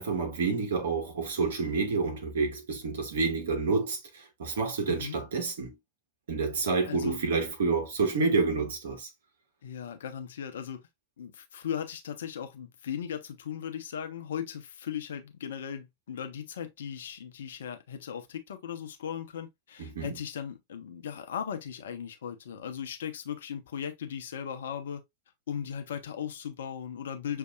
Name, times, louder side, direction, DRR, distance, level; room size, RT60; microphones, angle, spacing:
voice 1, 0.0-5.7 6.3-9.1 19.8-20.1, right 4 dB, 60° right, 1.5 m, -29 dB
voice 2, 6.9-7.2 9.6-10.8 11.2-25.0 25.5-27.4, left 8 dB, 60° left, 0.9 m, -37 dB
6.6 x 2.8 x 2.4 m
figure-of-eight pair, 90°, 0 cm